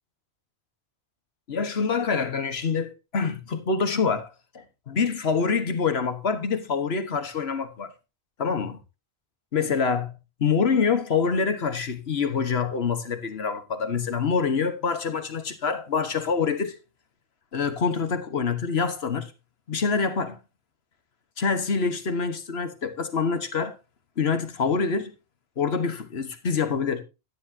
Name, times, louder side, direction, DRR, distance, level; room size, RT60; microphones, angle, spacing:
voice 1, 1.5-7.9 8.4-8.8 9.5-10.1 10.4-16.8 17.5-19.3 19.7-20.4 21.4-23.8 24.2-25.1 25.6-27.0, left 5 dB, 70° left, 1.5 m, -26 dB
12.0 x 10.0 x 2.8 m
omnidirectional pair, 1.1 m